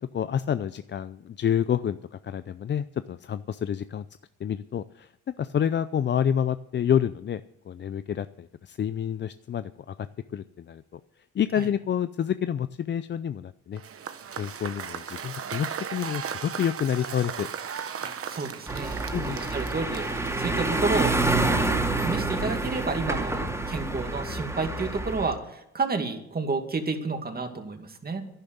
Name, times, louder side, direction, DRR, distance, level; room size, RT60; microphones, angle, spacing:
voice 1, 0.1-4.1 4.4-5.1 5.4-7.4 7.7-13.8 14.4-17.5 19.1-19.4, left 9 dB, 40° left, 13 dB, 0.5 m, -28 dB
Cheering / Applause / Crowd, 13.8-20.8, right 7 dB, 50° right, 1.1 m, -37 dB
voice 2, 18.0-21.1 21.5-28.2, right 4 dB, 30° right, 5 dB, 2.3 m, -31 dB
sound 1, 18.7-25.3, right 2 dB, 10° right, 2.9 m, -27 dB
11.5 x 10.5 x 7.9 m, 0.79 s
cardioid pair, 90°, 30 cm